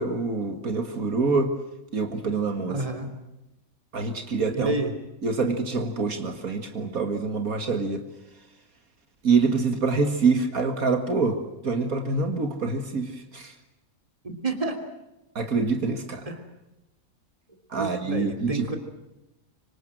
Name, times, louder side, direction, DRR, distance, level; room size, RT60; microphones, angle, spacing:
voice 1, 0.0-1.6 1.9-2.8 3.9-4.8 5.2-8.1 9.2-13.5 15.4-16.3 17.7-18.8, right 4 dB, 70° right, 6 dB, 2.4 m, -26 dB
voice 2, 2.7-3.1 4.5-4.9 14.2-14.8 16.3-16.4 17.7-18.8, right 2 dB, 25° right, 7 dB, 3.1 m, -29 dB
25.5 x 25.5 x 7.8 m, 0.96 s
omnidirectional pair, 1.5 m